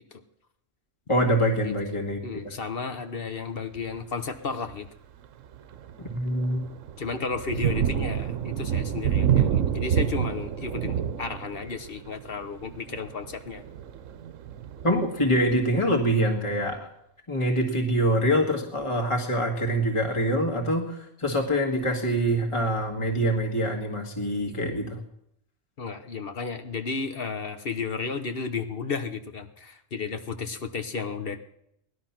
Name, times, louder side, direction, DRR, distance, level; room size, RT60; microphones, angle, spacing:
voice 1, 1.1-2.4 6.0-6.6 14.8-16.9 17.3-25.0, equal, 25° left, 1 dB, 1.9 m, -25 dB
voice 2, 2.2-4.9 7.0-13.6 25.8-31.4, left 5 dB, 50° left, 8 dB, 1.1 m, -33 dB
Thunder, 3.8-4.1 4.6-4.8 5.2-15.8, right 9 dB, 90° right, 1.1 m, -29 dB
19.0 x 11.5 x 5.9 m, 0.77 s
omnidirectional pair, 1.3 m